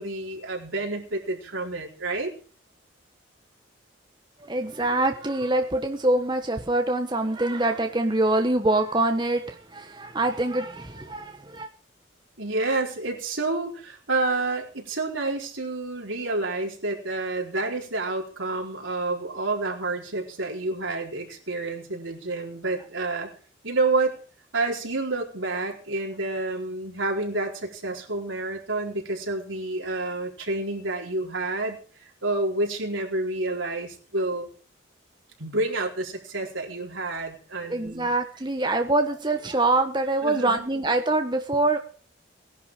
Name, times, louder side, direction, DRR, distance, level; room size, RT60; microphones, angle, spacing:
voice 1, 0.0-2.3 12.4-23.3 23.6-24.2 24.5-31.8 32.2-34.5 35.4-38.1 40.2-40.7, right 2 dB, 85° right, 1 dB, 4.4 m, -29 dB
voice 2, 4.4-11.7 37.7-41.8, right 2 dB, 25° right, 5 dB, 1.2 m, -24 dB
18.5 x 11.5 x 4.9 m, 0.41 s
head